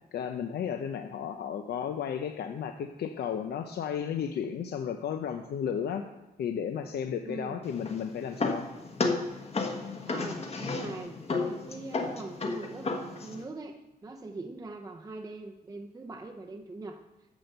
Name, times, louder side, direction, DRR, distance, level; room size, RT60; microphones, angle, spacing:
voice 1, 0.1-6.1 6.4-8.7, left 8 dB, 85° left, 6 dB, 0.6 m, -33 dB
voice 2, 7.2-7.5 10.1-11.1 11.4-17.0, right 3 dB, 20° right, 2 dB, 0.6 m, -42 dB
sound 1, 7.6-13.4, left 3 dB, 40° left, 1.3 m, -33 dB
10.0 x 6.9 x 6.7 m, 1.0 s
wide cardioid pair, 150°, 16 cm